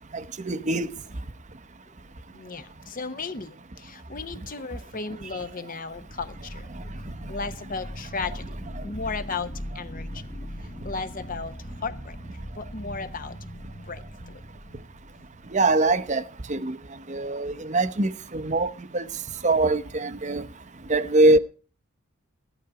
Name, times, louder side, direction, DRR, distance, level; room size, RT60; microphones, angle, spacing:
voice 1, 0.1-0.9 15.5-16.2 16.5-16.8 17.1-19.1 19.4-20.4 20.9-21.4, right 2 dB, 35° right, 0.8 m, -23 dB
sound 1, 0.9-1.5 5.8-16.0, equal, 25° left, 1.5 m, -40 dB
voice 2, 2.3-6.6 7.3-10.2 10.8-11.6 11.8-12.2 12.5-13.4 13.8-14.4, left 4 dB, 40° left, 1.0 m, -35 dB
14.5 x 11.5 x 4.8 m
head